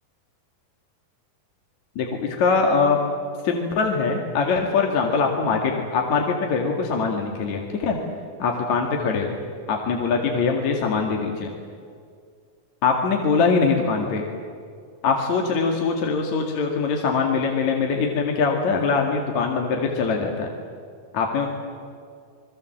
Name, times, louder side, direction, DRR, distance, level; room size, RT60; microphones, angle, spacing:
voice 1, 2.0-3.0 3.4-8.0 8.4-9.4 9.7-11.5 12.8-14.3 15.0-20.5 21.1-21.5, left 5 dB, 55° left, 1 dB, 3.1 m, -22 dB
28.5 x 21.5 x 7.8 m, 2.2 s
omnidirectional pair, 4.1 m